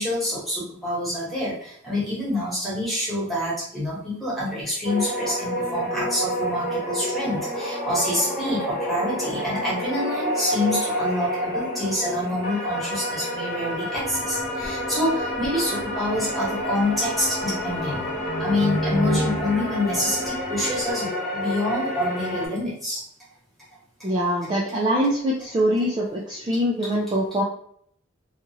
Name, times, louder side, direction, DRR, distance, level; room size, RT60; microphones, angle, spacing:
voice 1, 0.0-18.0 18.4-23.0 24.0-24.1, left 1 dB, ahead, -8 dB, 1.1 m, -27 dB
sound 1, 4.8-22.5, equal, 30° left, 1.0 m, -29 dB
sound 2, 13.9-20.9, right 1 dB, 50° left, 0.7 m, -32 dB
voice 2, 24.0-27.4, equal, 20° right, -5 dB, 0.3 m, -23 dB
2.9 x 2.4 x 2.7 m, 0.65 s
head